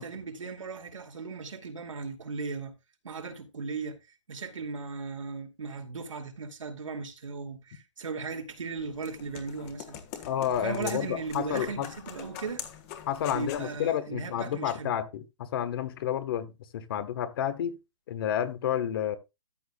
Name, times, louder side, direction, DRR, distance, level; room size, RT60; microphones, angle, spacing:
voice 1, 0.0-2.7 3.0-4.0 4.3-10.0 10.6-12.6 13.3-14.9, right 4 dB, 90° right, 2.5 m, -37 dB
sound 1, 8.5-13.7, left 10 dB, 30° left, 1.5 m, -43 dB
voice 2, 10.3-11.9 13.1-17.8 18.1-19.2, left 10 dB, 45° left, 1.2 m, -30 dB
13.5 x 8.2 x 2.3 m
hypercardioid pair, 150°, 16 cm